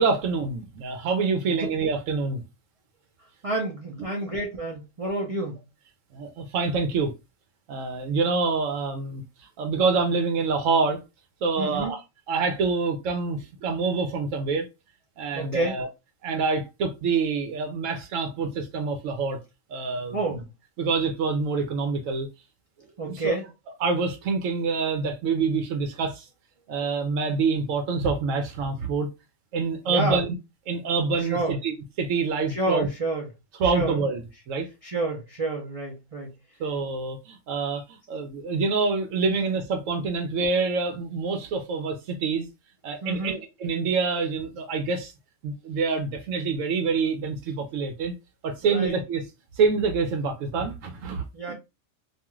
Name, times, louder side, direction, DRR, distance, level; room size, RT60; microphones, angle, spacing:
voice 1, 0.0-2.4 6.1-7.1 7.7-11.0 11.4-12.0 12.3-14.7 15.2-15.9 16.2-19.4 19.7-20.2 20.8-22.3 23.0-23.4 23.8-26.3 26.7-29.1 29.5-30.3 30.7-32.9 33.6-34.2 34.5-34.7 36.6-42.5 42.8-45.1 45.4-48.1 48.4-49.2 49.6-51.5, right 4 dB, 85° right, 1.0 m, -26 dB
voice 2, 3.4-5.6 11.6-11.9 15.3-15.8 20.1-20.5 23.0-23.5 29.9-30.2 31.2-31.6 32.5-33.3 33.6-34.0 34.8-36.3 43.0-43.4 48.6-49.0 51.3-51.5, right 2 dB, 45° right, 0.5 m, -29 dB
2.5 x 2.3 x 2.9 m
omnidirectional pair, 1.3 m